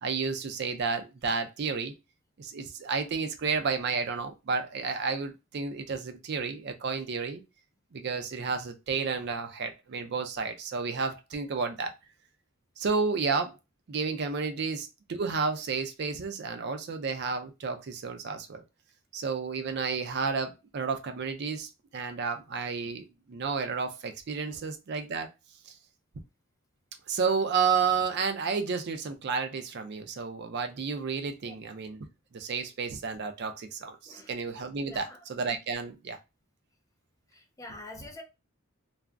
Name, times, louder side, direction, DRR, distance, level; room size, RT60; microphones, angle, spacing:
voice 1, 0.0-1.9 2.4-7.4 7.9-11.9 12.8-13.6 13.9-18.6 19.1-25.3 25.7-25.8 27.1-32.1 32.3-36.2, right 5 dB, 50° right, 0.4 m, -31 dB
voice 2, 34.8-35.2 37.3-38.2, left 2 dB, 15° left, 0.4 m, -46 dB
2.4 x 2.0 x 3.3 m
head